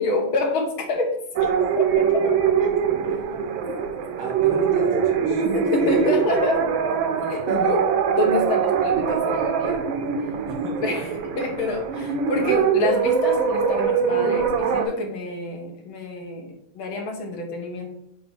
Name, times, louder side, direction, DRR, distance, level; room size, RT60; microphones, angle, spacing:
voice 1, 0.0-1.9 5.7-6.6 7.3-9.8 10.8-11.1 11.4-17.9, left 2 dB, 75° left, 2 dB, 2.1 m, -27 dB
sound 1, 1.4-14.9, right 7 dB, 75° right, 1.5 m, -23 dB
voice 2, 2.6-3.3 3.7-3.9 4.2-6.4 10.5-11.2, right 2 dB, 90° right, -1 dB, 3.1 m, -33 dB
8.2 x 2.8 x 4.4 m, 0.78 s
omnidirectional pair, 2.3 m